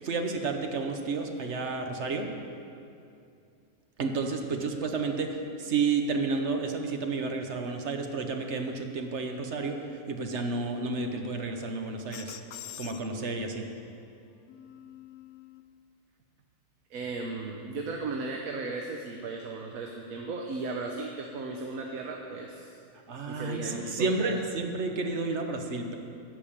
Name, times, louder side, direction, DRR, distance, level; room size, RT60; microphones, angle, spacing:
voice 1, 0.0-2.3 4.0-12.4 12.8-13.7 23.1-25.9, right 4 dB, 55° right, 4 dB, 1.1 m, -31 dB
sound 1, 12.1-13.9 14.5-15.6, left 10 dB, 85° left, 1.1 m, -45 dB
voice 2, 16.9-22.8 23.3-24.4, right 3 dB, 80° right, 2 dB, 1.2 m, -36 dB
12.5 x 5.3 x 8.6 m, 2.5 s
omnidirectional pair, 1.5 m